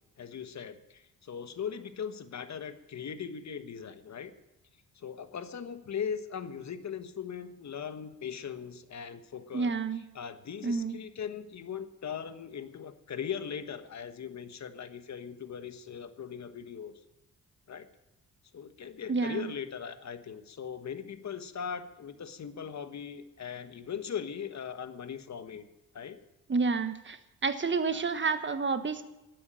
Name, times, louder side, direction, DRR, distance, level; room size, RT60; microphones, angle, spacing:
voice 1, 0.2-4.3 4.9-9.7 10.1-16.9 17.7-17.9 18.5-25.7 25.9-26.2 27.9-28.0, left 7 dB, 50° left, 10 dB, 1.4 m, -39 dB
voice 2, 9.5-10.0 10.6-11.0 19.1-19.5 26.5-29.0, right 4 dB, 30° right, 10 dB, 1.3 m, -29 dB
12.5 x 9.4 x 9.0 m, 0.99 s
cardioid pair, 75°, 36 cm